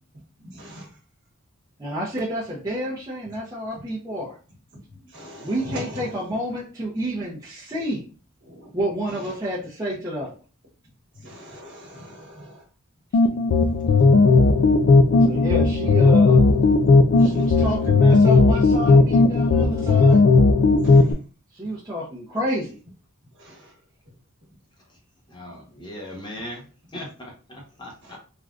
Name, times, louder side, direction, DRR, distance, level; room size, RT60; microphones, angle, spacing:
voice 1, 0.4-0.9 5.1-6.2 8.4-8.7 9.1-9.2 11.2-12.6 17.2-17.5 20.7-21.1 23.4-23.7 28.0-28.2, equal, 60° right, 0 dB, 1.2 m, -40 dB
voice 2, 1.8-4.4 5.4-8.1 8.7-10.3 15.2-16.4 17.2-20.2 21.5-22.8, equal, 15° right, -6 dB, 0.6 m, -29 dB
sound 1, 13.1-21.1, left 3 dB, 60° left, 0.3 m, -16 dB
voice 3, 25.3-26.6 26.9-28.2, left 1 dB, 20° left, -1 dB, 0.8 m, -38 dB
3.3 x 2.3 x 2.4 m, 0.36 s
head